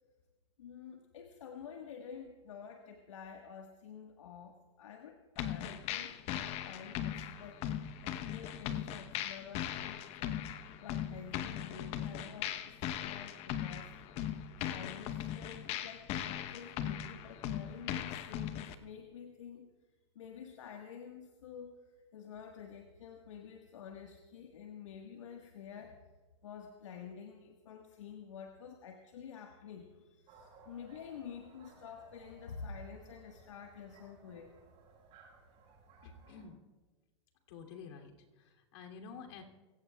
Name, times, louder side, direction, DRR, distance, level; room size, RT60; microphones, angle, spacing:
voice 1, 0.6-19.7 20.1-26.0 26.4-34.5, left 7 dB, 80° left, 3 dB, 1.5 m, -49 dB
sound 1, 5.4-18.7, left 10 dB, 40° left, 0.9 m, -39 dB
sound 2, 30.3-36.5, right 4 dB, 40° right, 5.7 m, -60 dB
voice 2, 36.0-36.6 37.5-39.4, left 5 dB, 65° left, 2 dB, 2.9 m, -50 dB
25.5 x 16.5 x 2.4 m, 1.3 s
hypercardioid pair, 120°, 16 cm